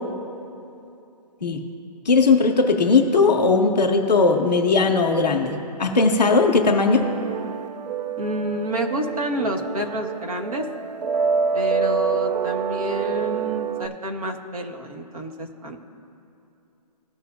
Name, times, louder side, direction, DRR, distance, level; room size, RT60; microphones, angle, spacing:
voice 1, 2.0-7.1, left 4 dB, 10° left, -11 dB, 0.4 m, -18 dB
sound 1, 7.0-13.9, right 6 dB, 85° right, 0.5 m, -27 dB
voice 2, 8.2-10.7 11.5-15.8, equal, 60° right, 2 dB, 1.6 m, -29 dB
17.0 x 7.2 x 2.7 m, 2.8 s
hypercardioid pair, 175°, 21 cm